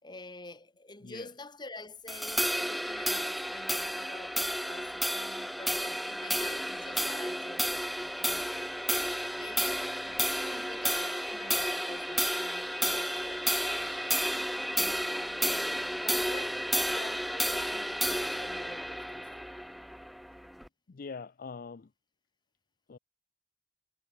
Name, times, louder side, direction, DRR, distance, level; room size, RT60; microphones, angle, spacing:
voice 1, 0.0-8.7 9.4-13.5 13.7-15.0 16.0-19.5, left 2 dB, 25° left, 2.8 m, -48 dB
sound 1, 2.1-20.7, equal, ahead, 0.5 m, -32 dB
voice 2, 20.9-21.9 22.9-23.0, left 4 dB, 55° left, 0.5 m, -43 dB
head